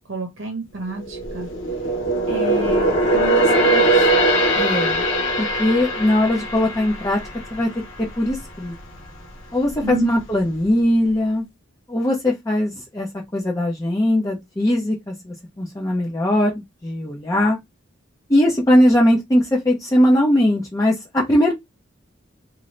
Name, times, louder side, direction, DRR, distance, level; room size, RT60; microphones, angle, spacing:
voice 1, 0.1-1.9 2.3-4.2 9.8-10.1, right 2 dB, 75° right, 0.9 m, -30 dB
sound 1, 0.9-8.4 8.8-9.0 9.6-10.3 10.6-10.7, right 1 dB, 85° left, 1.1 m, -21 dB
voice 2, 4.5-5.0 5.4-7.2 7.5-7.7 8.2-8.7 9.5-11.4 11.9-13.1 13.3-17.6 18.3-21.5, left 1 dB, 15° left, 0.6 m, -20 dB
2.6 x 2.6 x 3.1 m
head